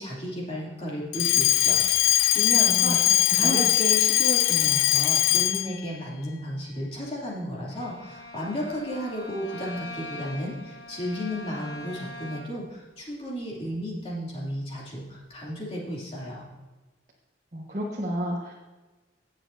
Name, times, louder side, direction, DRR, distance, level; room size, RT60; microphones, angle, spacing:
voice 1, 0.0-16.5, equal, 30° left, -5 dB, 2.8 m, -33 dB
Alarm, 1.1-5.8, left 14 dB, 90° left, 0.4 m, -21 dB
Bowed string instrument, 7.7-12.7, left 1 dB, 60° left, 1.8 m, -42 dB
voice 2, 17.5-18.5, equal, 40° right, -3 dB, 1.4 m, -30 dB
17.0 x 7.3 x 2.7 m, 1.2 s
head